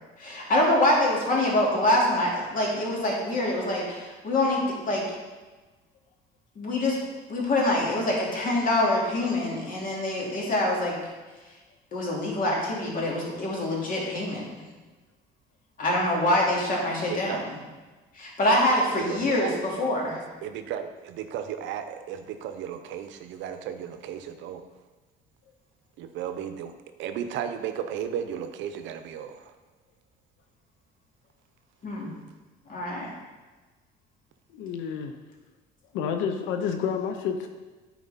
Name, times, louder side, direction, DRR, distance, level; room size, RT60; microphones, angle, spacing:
voice 1, 0.2-5.0 6.6-7.0 7.3-11.0 11.9-14.5 15.8-17.4 18.1-20.2 31.8-32.1 32.7-33.1, left 1 dB, 45° left, -3 dB, 2.4 m, -25 dB
voice 2, 17.1-17.4 19.1-19.5 20.4-24.6 26.0-26.7 27.0-29.5, right 9 dB, 70° right, 8 dB, 0.7 m, -34 dB
voice 3, 34.5-35.1 35.9-37.5, left 7 dB, 85° left, 6 dB, 0.6 m, -29 dB
9.3 x 4.5 x 4.1 m, 1.3 s
cardioid pair, 100°, 20 cm